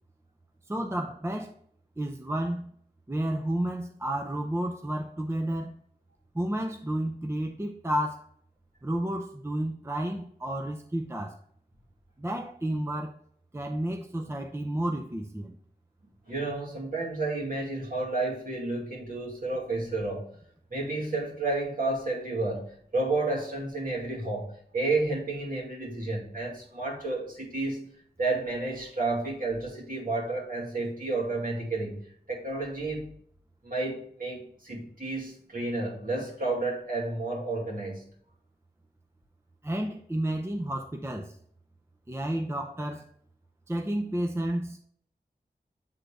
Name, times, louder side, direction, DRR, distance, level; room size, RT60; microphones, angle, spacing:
voice 1, 0.7-1.6 2.0-2.7 3.1-5.8 6.3-8.2 8.8-11.4 12.2-13.1 13.5-15.6 39.6-41.4 42.1-43.0 43.7-44.8, right 1 dB, 15° right, 0.6 m, -31 dB
voice 2, 16.3-20.3 20.7-27.8 28.2-33.1 33.6-38.1, right 2 dB, 55° right, 2.3 m, -31 dB
7.9 x 3.9 x 3.3 m
wide cardioid pair, 65°, 17 cm